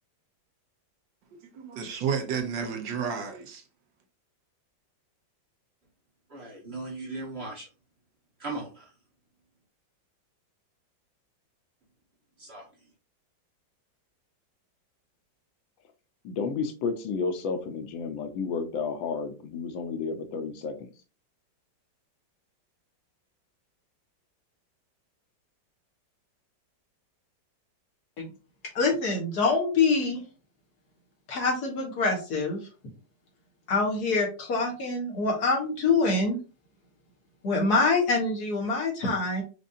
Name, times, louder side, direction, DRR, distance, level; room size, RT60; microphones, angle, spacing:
voice 1, 1.5-3.6, right 6 dB, 75° right, 1.5 m, -31 dB
voice 2, 6.3-7.7 8.4-8.9 12.4-12.7, right 2 dB, 40° right, 1.1 m, -38 dB
voice 3, 16.2-20.9, left 5 dB, 90° left, 1.5 m, -31 dB
voice 4, 28.8-30.2 31.3-32.6 33.7-36.4 37.4-39.4, left 3 dB, 55° left, 1.7 m, -25 dB
5.2 x 2.6 x 2.6 m
omnidirectional pair, 2.1 m